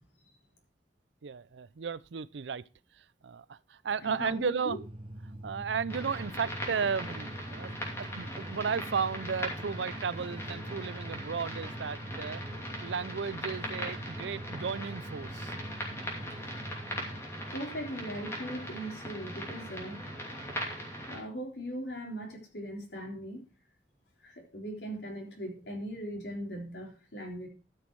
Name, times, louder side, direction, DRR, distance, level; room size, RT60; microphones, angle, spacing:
voice 1, 1.2-2.7 3.0-4.8 5.4-12.4 12.8-15.5, right 6 dB, 85° right, 0.5 m, -34 dB
voice 2, 4.0-4.8 17.5-20.0 21.1-23.4 24.2-27.5, equal, 75° left, 3.6 m, -39 dB
sound 1, 4.7-17.2, right 1 dB, 30° right, 1.2 m, -44 dB
sound 2, 5.9-21.2, equal, 15° left, 2.8 m, -40 dB
13.0 x 6.2 x 4.6 m
head